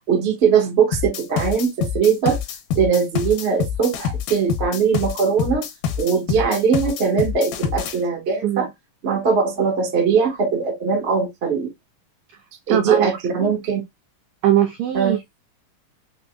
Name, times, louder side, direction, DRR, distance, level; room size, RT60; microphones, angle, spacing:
voice 1, 0.1-2.4 2.7-5.7 6.0-8.7 9.0-11.7 12.7-13.8 14.9-15.2, right 6 dB, 50° right, 0.7 m, -20 dB
sound 1, 0.9-8.0, left 7 dB, 85° left, 2.4 m, -26 dB
voice 2, 12.7-13.1 13.4-13.5 14.4-15.4, right 11 dB, 85° right, 1.6 m, -21 dB
5.9 x 2.1 x 2.3 m
omnidirectional pair, 3.7 m